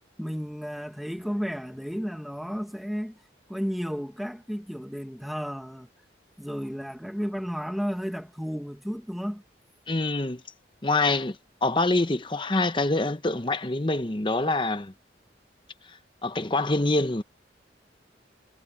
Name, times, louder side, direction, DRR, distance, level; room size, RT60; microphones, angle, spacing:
voice 1, 0.2-3.2 3.5-5.9 6.4-9.4, equal, ahead, 1.4 m, -33 dB
voice 2, 9.9-10.4 10.8-11.4 11.6-14.9 16.2-17.2, left 2 dB, 25° left, 0.9 m, -25 dB
head